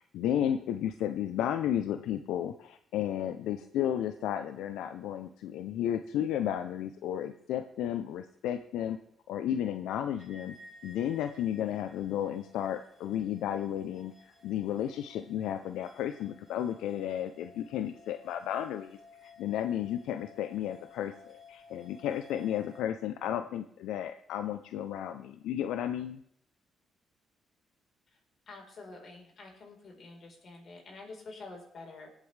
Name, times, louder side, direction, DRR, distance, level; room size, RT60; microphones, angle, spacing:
voice 1, 0.0-9.0 9.3-10.6 10.8-18.9 19.2-26.2, left 10 dB, 90° left, 9 dB, 0.5 m, -33 dB
sound 1, 10.2-22.8, left 3 dB, 15° right, 5.9 m, -56 dB
voice 2, 28.5-32.1, left 3 dB, 50° left, 1 dB, 4.1 m, -48 dB
20.0 x 8.2 x 3.3 m, 0.70 s
cardioid pair, 90°, 0 cm